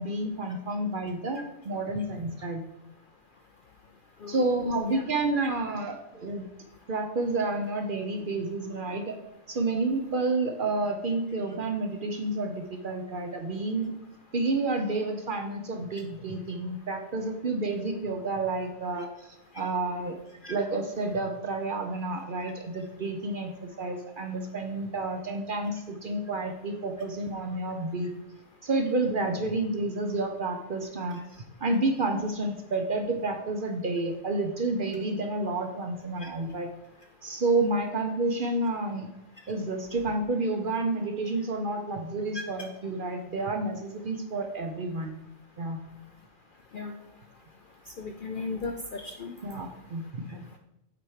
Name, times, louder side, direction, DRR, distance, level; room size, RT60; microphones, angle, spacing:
voice 1, 0.0-2.7 4.3-6.4 6.9-9.2 9.5-13.9 14.3-20.2 20.5-28.1 28.6-31.2 31.6-36.7 37.2-39.1 39.5-45.1 45.6-45.8 49.4-50.6, right 2 dB, 50° right, 5 dB, 0.8 m, -30 dB
voice 2, 48.0-49.4, left 3 dB, 60° left, 4 dB, 0.6 m, -36 dB
7.7 x 4.5 x 4.9 m, 0.85 s
omnidirectional pair, 1.4 m